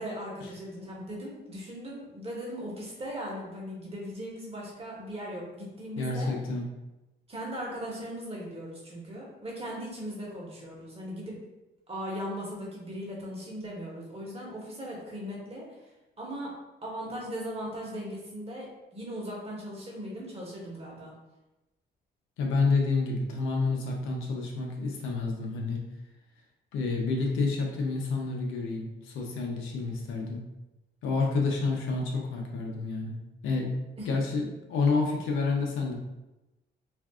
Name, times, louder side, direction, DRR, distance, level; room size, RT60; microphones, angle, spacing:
voice 1, 0.0-6.3 7.3-11.4 11.9-15.7 16.2-16.6 16.8-21.1 34.0-34.1, equal, 30° right, -3 dB, 1.1 m, -38 dB
voice 2, 6.0-6.7 22.4-25.8 26.7-30.4 31.0-33.2 33.4-33.8 34.1-35.9, left 3 dB, 90° left, 0 dB, 0.7 m, -29 dB
2.5 x 2.4 x 3.5 m, 1.0 s
cardioid pair, 90°, 20 cm